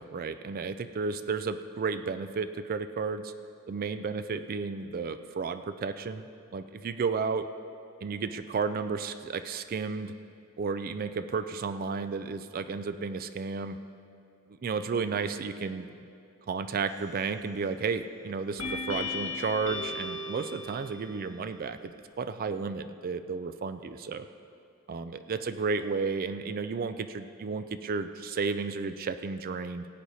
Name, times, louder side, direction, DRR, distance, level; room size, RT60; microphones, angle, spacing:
voice 1, 0.0-3.3 3.7-6.3 6.5-7.5 8.0-10.1 10.6-13.8 14.6-15.9 16.5-24.3 24.9-29.9, right 5 dB, 40° right, 10 dB, 0.4 m, -32 dB
sound 1, 16.9-17.4 18.6-21.4, left 3 dB, 65° left, 1.9 m, -37 dB
18.0 x 8.4 x 4.1 m, 2.6 s
head